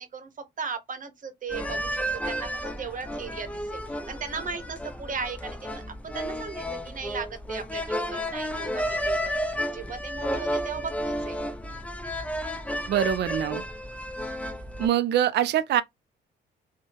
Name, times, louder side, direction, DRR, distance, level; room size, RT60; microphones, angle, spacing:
voice 1, 0.0-11.4, right 5 dB, 40° right, 0.9 m, -37 dB
sound 1, 1.5-14.9, equal, 5° left, 0.4 m, -32 dB
voice 2, 12.9-13.6 14.8-15.8, right 11 dB, 60° right, 0.4 m, -24 dB
2.7 x 2.1 x 2.8 m
cardioid pair, 90°, 20 cm